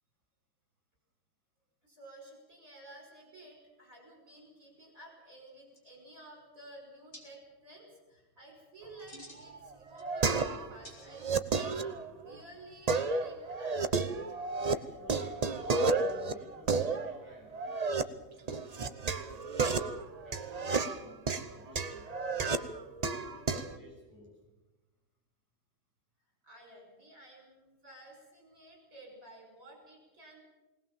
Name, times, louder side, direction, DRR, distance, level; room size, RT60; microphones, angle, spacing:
voice 1, 1.8-11.3 11.5-14.0 26.4-30.4, right 1 dB, 55° right, 0 dB, 6.0 m, -53 dB
sound 1, 5.5-5.6 5.7-6.3 7.1-7.2 8.8-9.5 9.9-10.5 10.8-11.4, left 1 dB, 35° left, 4.2 m, -52 dB
sound 2, 9.4-10.8 11.1-12.4 12.9-14.7 15.0-18.0 18.5-23.8, right 4 dB, 35° right, 0.6 m, -32 dB
voice 2, 14.7-15.4 15.7-17.8 18.4-19.0 19.4-19.8 20.2-22.6 23.2-24.3, left 1 dB, 10° left, -3 dB, 7.0 m, -53 dB
20.5 x 19.0 x 7.3 m, 1.1 s
omnidirectional pair, 1.7 m